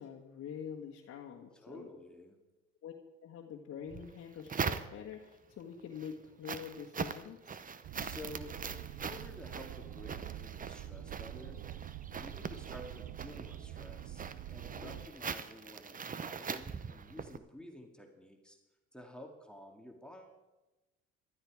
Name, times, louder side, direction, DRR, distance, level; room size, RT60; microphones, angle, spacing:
voice 1, 0.0-1.9 2.8-2.9 3.2-7.6 12.2-12.6 14.8-15.0, left 8 dB, 55° left, 0 dB, 1.6 m, -46 dB
voice 2, 1.6-2.4 7.9-11.6 12.2-14.2 14.5-18.6 18.9-20.6, left 1 dB, 5° left, 2 dB, 2.1 m, -51 dB
sound 1, 3.9-5.3 5.8-17.4, right 6 dB, 30° right, 0.8 m, -42 dB
sound 2, 7.8-15.1, right 12 dB, 60° right, 0.8 m, -46 dB
15.0 x 12.5 x 4.9 m, 1.1 s
supercardioid pair, 85°, 30 cm